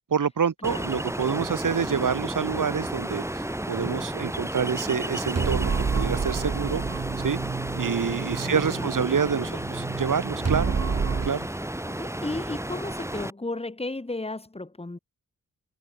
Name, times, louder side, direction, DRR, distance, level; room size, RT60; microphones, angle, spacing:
voice 1, 0.1-6.8 7.2-7.4 7.8-10.7 11.2-11.5, right 7 dB, 65° right, 2.4 m, -27 dB
Ocean, 0.6-13.3, right 1 dB, 10° right, 3.0 m, -32 dB
sound 1, 5.4-11.3, right 5 dB, 45° right, 3.0 m, -29 dB
voice 2, 8.1-9.7 11.8-15.0, left 2 dB, 15° left, 3.4 m, -35 dB
wide cardioid pair, 140°, 34 cm